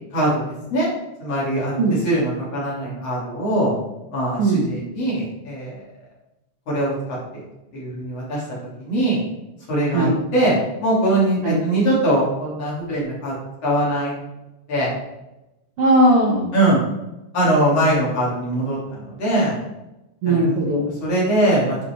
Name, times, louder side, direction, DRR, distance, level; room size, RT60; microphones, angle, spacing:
voice 1, 0.1-0.4 0.7-0.9 1.2-3.7 4.1-5.8 6.7-7.2 7.7-8.4 8.8-9.2 9.7-10.5 10.8-13.3 13.6-14.1 14.7-14.9 16.5-16.8 17.3-19.6 20.2-20.4 21.0-21.8, right 1 dB, 50° left, -6 dB, 4.1 m, -21 dB
voice 2, 15.8-16.5 20.2-20.9, right 1 dB, 60° right, -2 dB, 1.7 m, -18 dB
11.0 x 5.1 x 4.5 m, 0.95 s
omnidirectional pair, 3.6 m